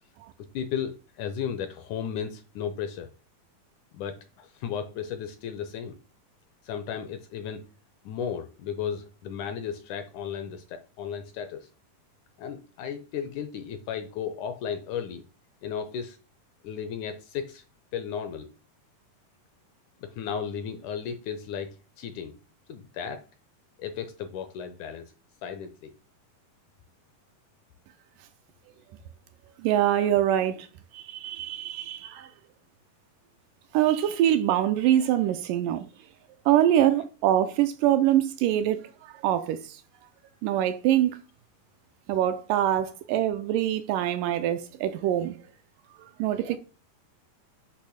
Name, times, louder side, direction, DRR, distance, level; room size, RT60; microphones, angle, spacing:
voice 1, 0.5-3.1 3.9-6.0 6.6-7.6 8.0-11.7 12.4-15.2 15.6-16.2 16.6-17.6 17.9-18.5 20.0-22.4 22.7-23.2 23.8-25.1 25.4-25.9, left 7 dB, 75° left, 1.9 m, -34 dB
voice 2, 29.6-30.7 30.9-32.3 33.7-35.9 36.5-38.8 39.2-39.8 40.4-41.2 42.1-45.4 46.2-46.6, right 11 dB, 80° right, 2.0 m, -24 dB
8.6 x 3.0 x 6.3 m
omnidirectional pair, 4.1 m